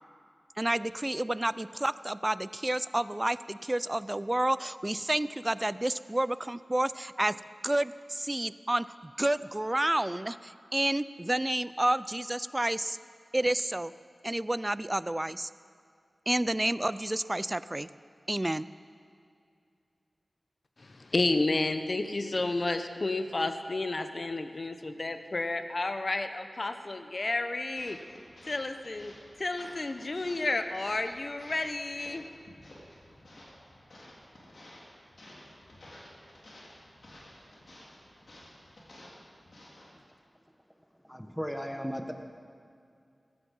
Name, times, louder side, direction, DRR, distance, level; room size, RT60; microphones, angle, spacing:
voice 1, 0.6-7.4 7.6-13.0 13.3-13.9 14.2-15.5 16.3-17.9 18.3-18.7, right 1 dB, 20° right, 16 dB, 0.4 m, -30 dB
voice 2, 20.8-28.0 28.5-32.3, left 2 dB, 50° left, 8 dB, 0.9 m, -31 dB
sound 1, 27.8-39.9, left 1 dB, 70° left, 3.4 m, -53 dB
voice 3, 41.0-42.1, equal, ahead, 5 dB, 1.3 m, -35 dB
15.0 x 15.0 x 5.5 m, 2.4 s
wide cardioid pair, 70°, 0 cm